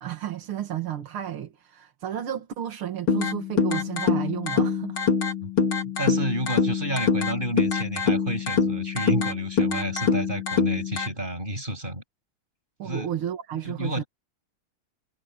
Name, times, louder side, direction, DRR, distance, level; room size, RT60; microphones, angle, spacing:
voice 1, 0.0-5.0 12.8-14.0, right 10 dB, 80° right, 2.5 m, -32 dB
sound 1, 3.1-11.1, left 5 dB, 75° left, 3.7 m, -25 dB
voice 2, 5.4-12.0 12.8-13.1 13.6-14.1, right 1 dB, 20° right, 7.6 m, -31 dB
omnidirectional pair, 2.3 m